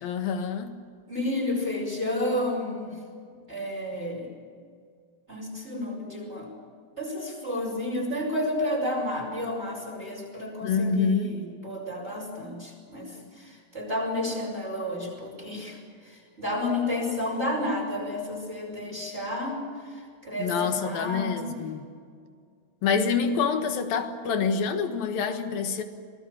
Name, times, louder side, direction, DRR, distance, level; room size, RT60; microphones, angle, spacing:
voice 1, 0.0-0.8 10.6-11.4 20.4-21.8 22.8-25.8, left 5 dB, 80° left, 7 dB, 3.3 m, -26 dB
voice 2, 1.1-2.9 3.5-4.3 5.3-6.5 7.0-15.8 16.1-19.6 19.9-21.5, left 1 dB, 15° right, -2 dB, 5.8 m, -31 dB
26.0 x 19.0 x 7.4 m, 2.1 s
omnidirectional pair, 4.1 m